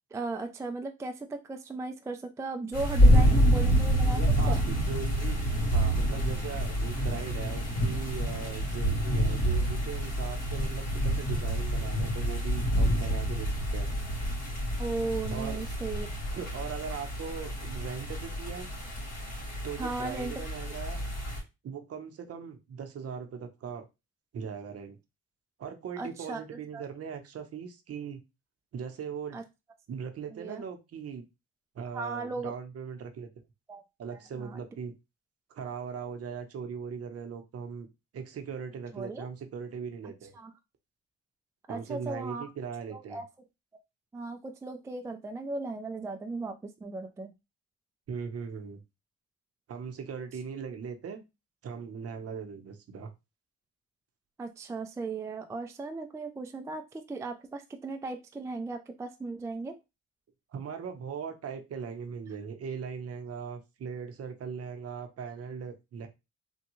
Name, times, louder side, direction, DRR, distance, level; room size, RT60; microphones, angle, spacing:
voice 1, 0.1-4.6 14.8-16.1 19.8-20.3 26.0-26.4 26.7-26.8 29.3-29.4 30.3-30.6 31.9-32.5 33.7-33.8 34.1-34.6 38.9-39.3 40.4-40.5 41.7-42.5 42.9-43.2 44.1-47.3 54.4-59.8, right 3 dB, 10° right, 6 dB, 0.3 m, -36 dB
sound 1, 2.7-21.4, equal, 55° left, 2.1 m, -27 dB
voice 2, 4.1-13.9 15.3-15.6 16.3-18.7 19.6-21.0 21.6-23.9 24.3-25.0 25.6-28.2 28.7-29.4 29.9-31.2 31.7-33.3 34.0-34.9 35.5-37.9 38.1-40.4 41.7-43.2 48.1-48.8 49.7-51.2 51.6-53.1 60.5-66.1, right 6 dB, 50° right, 6 dB, 0.7 m, -39 dB
3.4 x 2.2 x 3.0 m, 0.24 s
cardioid pair, 90°, 30 cm